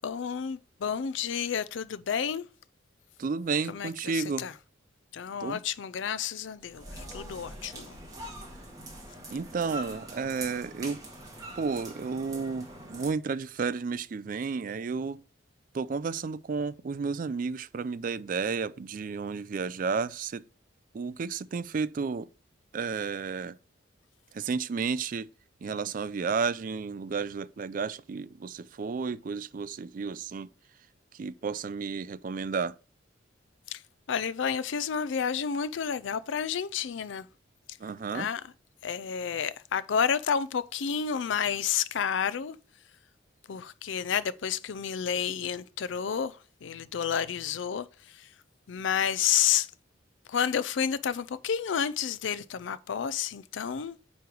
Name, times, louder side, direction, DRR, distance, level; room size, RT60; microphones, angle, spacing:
voice 1, 0.0-2.5 3.7-4.5 5.1-8.0 33.7-33.8 34.1-37.3 38.1-38.4 38.8-42.6 43.5-48.3 48.7-49.7 50.3-54.0, left 7 dB, 75° left, 0.4 m, -30 dB
voice 2, 3.2-4.5 5.4-5.6 9.3-11.0 11.6-15.2 15.7-20.4 20.9-22.3 22.7-23.6 24.3-25.3 25.6-30.5 31.1-32.7 37.8-38.3, right 5 dB, 45° right, 0.4 m, -32 dB
sound 1, 6.6-13.1, right 1 dB, 20° right, 1.7 m, -43 dB
9.3 x 3.2 x 5.2 m
head